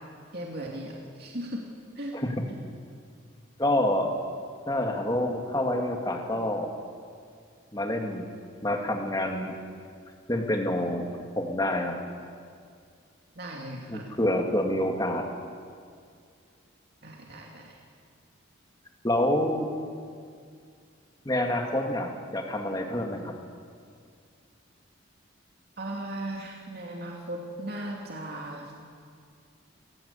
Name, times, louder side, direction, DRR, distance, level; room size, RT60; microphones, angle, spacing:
voice 1, 0.3-1.6 2.0-2.2 2.5-2.6 13.3-14.0 17.0-17.8 25.8-28.7, right 1 dB, 50° right, -1 dB, 2.8 m, -37 dB
voice 2, 2.1-2.4 3.6-4.2 4.7-6.7 7.7-8.2 8.6-9.6 10.3-11.0 11.4-12.0 13.9-15.3 19.0-19.7 21.2-23.3, left 1 dB, 20° left, 2 dB, 2.4 m, -27 dB
27.0 x 17.0 x 8.4 m, 2.2 s
head